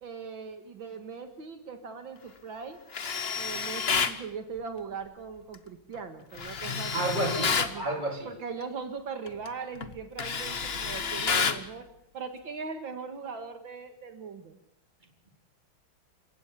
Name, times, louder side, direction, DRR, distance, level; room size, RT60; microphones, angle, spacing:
voice 1, 0.0-2.8 3.4-7.8 8.2-11.9 12.1-14.5, right 5 dB, 70° right, 7 dB, 2.5 m, -40 dB
Tools, 2.9-4.2 6.4-7.8 9.3-9.5 9.8-11.7, left 5 dB, 35° left, 1.1 m, -29 dB
voice 2, 6.9-8.3, right 2 dB, 20° right, 4 dB, 3.9 m, -30 dB
29.5 x 16.0 x 7.4 m, 0.74 s
omnidirectional pair, 2.2 m